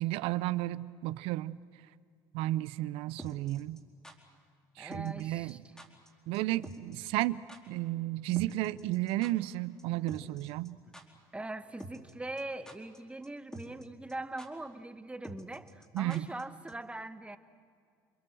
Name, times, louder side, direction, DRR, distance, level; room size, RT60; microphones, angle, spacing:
voice 1, 0.0-1.6 2.3-3.8 4.8-5.6 6.3-10.8 15.9-16.3, right 16 dB, 75° right, 18 dB, 0.7 m, -33 dB
sound 1, 3.2-4.1 4.9-5.2 5.5-5.6 5.8-6.1 6.3-6.4 6.6-6.9 7.2-7.3 7.5-7.6 8.3-9.5 9.8-9.9 10.1-10.7 10.9-11.0 11.8-12.1 12.4-13.0 13.2-13.3 13.5-13.8 14.1-14.2 14.4-14.5 15.2-16.4 16.7-16.8, right 1 dB, 5° left, 4.5 m, -47 dB
voice 2, 4.8-5.7 10.8-10.9 11.3-17.4, right 2 dB, 10° right, 11 dB, 1.3 m, -42 dB
29.0 x 22.5 x 7.9 m, 2.2 s
supercardioid pair, 90°, 10 cm